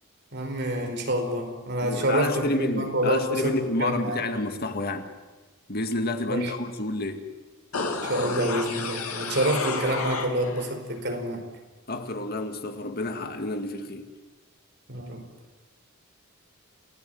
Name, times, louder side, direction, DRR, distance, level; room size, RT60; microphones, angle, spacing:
voice 1, 0.3-4.2 6.3-6.5 8.0-11.5 14.9-15.2, right 1 dB, 55° right, 4 dB, 4.8 m, -27 dB
voice 2, 1.8-5.1 5.7-7.3 11.9-14.1, left 2 dB, 45° left, 6 dB, 2.1 m, -29 dB
sound 1, 7.7-10.7 11.1-11.2, left 4 dB, 90° left, 3.0 m, -31 dB
29.0 x 17.0 x 9.4 m, 1.2 s
head